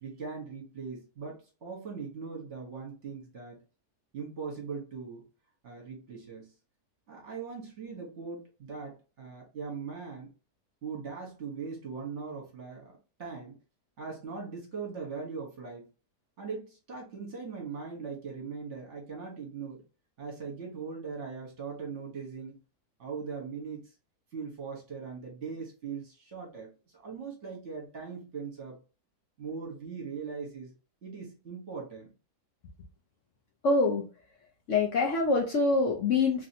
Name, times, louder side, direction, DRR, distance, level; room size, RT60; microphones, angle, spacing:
voice 1, 0.0-3.6 4.1-5.2 5.6-6.5 7.1-10.3 10.8-13.6 14.0-15.9 16.4-19.8 20.2-22.6 23.0-23.9 24.3-26.7 26.9-28.8 29.4-30.7 31.0-32.1, right 5 dB, 50° right, 0 dB, 1.2 m, -40 dB
voice 2, 33.6-34.0 34.7-36.5, left 3 dB, 60° left, 0 dB, 0.8 m, -25 dB
3.1 x 2.7 x 2.6 m, 0.34 s
omnidirectional pair, 1.7 m